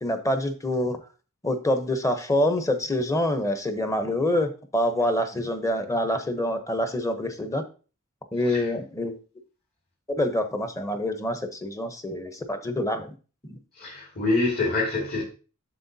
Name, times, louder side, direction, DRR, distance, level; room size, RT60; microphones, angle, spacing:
voice 1, 0.0-1.0 1.4-7.6 8.3-9.2 10.1-13.1 13.4-13.6, left 1 dB, 15° left, 0.8 m, -26 dB
voice 2, 13.7-15.2, left 2 dB, 45° left, 2.1 m, -26 dB
7.7 x 6.6 x 2.7 m
head